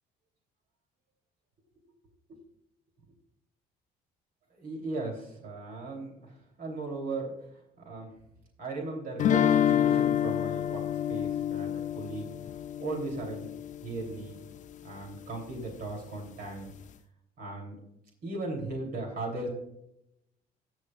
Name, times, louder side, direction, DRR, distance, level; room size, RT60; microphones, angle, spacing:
voice 1, 4.5-7.3 7.8-8.1 8.6-12.3 12.8-13.5 13.8-14.4 14.8-16.7 17.4-17.8 18.2-19.5, right 2 dB, 60° right, 1 dB, 3.1 m, -37 dB
sound 1, 9.2-14.1, left 10 dB, 45° left, 0.5 m, -28 dB
18.5 x 6.6 x 2.4 m, 0.79 s
cardioid pair, 110°, 17 cm